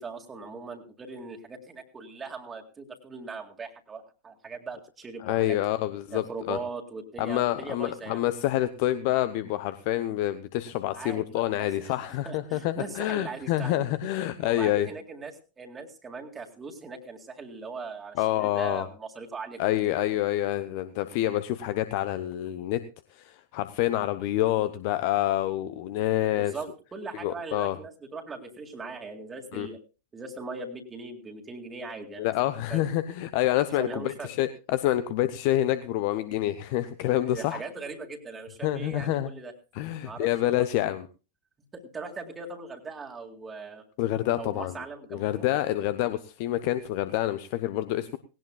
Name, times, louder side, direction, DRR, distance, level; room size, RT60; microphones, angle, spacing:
voice 1, 0.0-5.6 6.1-8.2 10.9-12.0 12.2-13.9 14.4-19.6 26.4-29.8 30.1-32.3 32.7-32.9 33.8-34.3 37.3-39.5 40.0-40.7 41.7-43.8 44.4-45.5, right 4 dB, 15° right, 1 dB, 2.1 m, -40 dB
voice 2, 5.2-6.6 7.2-14.9 18.2-18.9 19.6-22.8 23.1-26.5 27.2-27.8 29.5-29.7 32.2-37.6 38.6-39.3 39.7-41.1 44.0-44.7 45.1-48.2, left 14 dB, 45° left, 12 dB, 0.8 m, -27 dB
18.5 x 18.0 x 2.3 m, 0.33 s
figure-of-eight pair, 90°, 0 cm